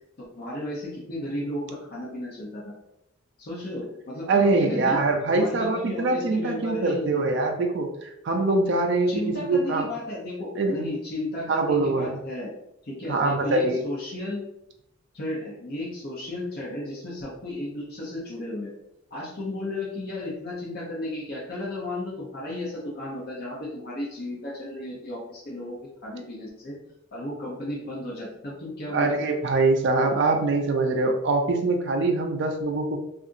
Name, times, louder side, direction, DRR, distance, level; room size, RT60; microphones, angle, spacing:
voice 1, 0.2-2.7 3.4-5.0 5.3-7.2 9.1-12.5 12.8-14.5 15.1-18.7 19.1-26.8 27.1-29.3, left 1 dB, 50° left, -5 dB, 0.7 m, -34 dB
voice 2, 4.3-9.1 9.4-9.9 10.6-10.9 11.5-12.2 13.1-13.8 28.9-33.0, right 3 dB, 60° right, 3 dB, 0.4 m, -23 dB
2.7 x 2.5 x 2.5 m, 0.80 s
head